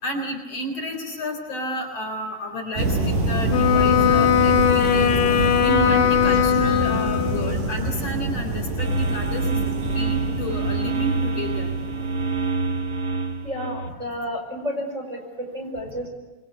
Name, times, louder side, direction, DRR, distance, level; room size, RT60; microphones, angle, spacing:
voice 1, 0.0-5.1 5.6-9.6 9.9-11.7, left 1 dB, 45° left, 4 dB, 4.9 m, -31 dB
sound 1, 2.7-13.3, right 2 dB, 75° right, 6.4 m, -26 dB
Wind instrument woodwind instrument, 3.5-7.7, left 9 dB, 80° left, 3.4 m, -20 dB
sound 2, 8.8-13.9, right 3 dB, 35° right, 2.5 m, -26 dB
voice 2, 13.4-15.2 15.5-16.1, equal, 20° right, 2 dB, 5.9 m, -30 dB
27.5 x 23.0 x 8.5 m, 1.2 s
omnidirectional pair, 3.8 m